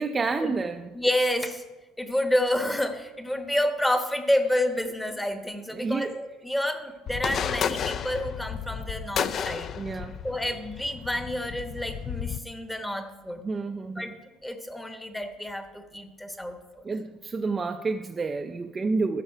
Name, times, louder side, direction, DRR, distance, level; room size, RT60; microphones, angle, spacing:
voice 1, 0.0-0.9 5.7-6.1 9.7-10.2 13.4-14.1 16.8-19.2, right 4 dB, 20° right, 0.4 m, -29 dB
voice 2, 0.9-1.6 2.0-9.7 10.2-13.4 14.0-14.1 14.4-16.8, left 1 dB, 5° left, 1.0 m, -29 dB
sound 1, 7.1-12.4, left 7 dB, 40° left, 0.4 m, -32 dB
12.5 x 6.7 x 5.5 m
cardioid pair, 135°, 0 cm